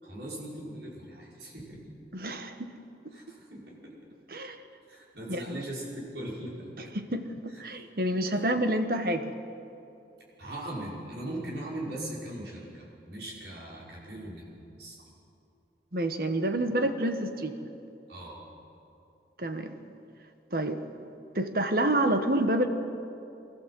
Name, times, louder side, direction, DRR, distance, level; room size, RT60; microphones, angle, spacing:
voice 1, 0.0-1.9 3.1-3.9 4.9-6.9 7.5-7.6 8.3-8.4 10.4-14.5 14.8-15.0 18.1-18.4, right 1 dB, 75° right, -5 dB, 5.7 m, -40 dB
voice 2, 2.1-2.7 4.3-4.6 5.3-5.6 7.1-9.3 15.9-17.7 19.4-19.7 20.5-20.8 21.3-22.7, right 1 dB, 55° right, 7 dB, 1.4 m, -28 dB
24.5 x 14.0 x 7.8 m, 2.8 s
head